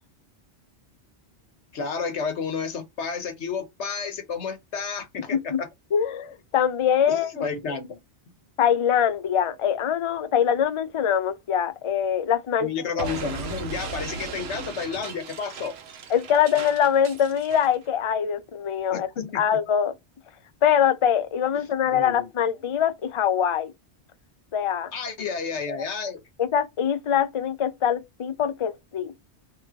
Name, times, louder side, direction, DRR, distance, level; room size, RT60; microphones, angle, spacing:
voice 1, 1.7-5.7 7.1-8.0 12.6-15.7 18.9-19.6 21.9-22.3 24.9-26.2, left 5 dB, 85° left, 1.3 m, -31 dB
voice 2, 5.9-7.5 8.6-12.7 13.0-13.1 16.1-19.1 19.3-19.9 20.6-23.7 24.5-24.9 26.4-29.1, left 8 dB, 50° left, 0.4 m, -23 dB
Explosion, 13.0-17.8, right 5 dB, 70° right, 1.0 m, -37 dB
3.4 x 3.2 x 4.8 m
omnidirectional pair, 1.1 m